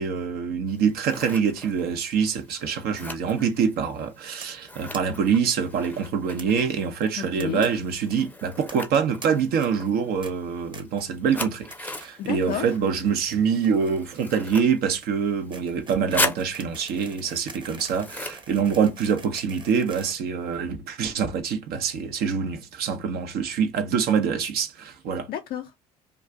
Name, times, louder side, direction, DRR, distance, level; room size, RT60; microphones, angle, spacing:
voice 1, 0.0-25.3, right 6 dB, 60° right, 0.6 m, -25 dB
Scissors, 0.7-19.5, left 2 dB, 10° left, 0.6 m, -38 dB
sound 1, 4.4-4.6 4.9-5.0 5.3-5.4 5.6-5.7 6.4-6.5 7.0-7.7 7.9-8.1 8.7-9.3 9.6-9.9 10.2-10.3 10.7-11.1 11.4-11.7 12.0-12.6 12.9-20.9, right 4 dB, 25° right, 0.8 m, -45 dB
voice 2, 7.2-7.7 12.2-12.7 25.3-25.8, left 10 dB, 55° left, 0.5 m, -31 dB
2.4 x 2.2 x 3.4 m
hypercardioid pair, 60°, 18 cm